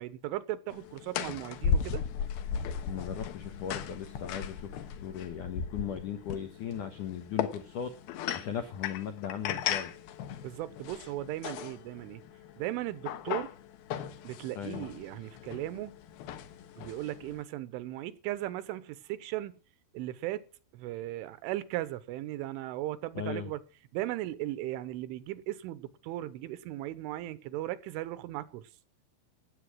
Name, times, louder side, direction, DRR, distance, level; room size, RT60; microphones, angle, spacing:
voice 1, 0.0-2.0 10.4-12.2 12.6-13.5 14.2-16.0 16.8-19.5 19.9-20.5 20.7-23.6 23.9-28.6, right 15 dB, 80° right, 3.2 m, -37 dB
sound 1, 0.7-17.4, left 7 dB, 70° left, 2.5 m, -37 dB
voice 2, 2.9-4.7 5.0-7.9 8.3-9.9 14.6-14.9 23.2-23.5, left 8 dB, 85° left, 1.7 m, -37 dB
17.5 x 8.7 x 6.3 m
omnidirectional pair, 5.8 m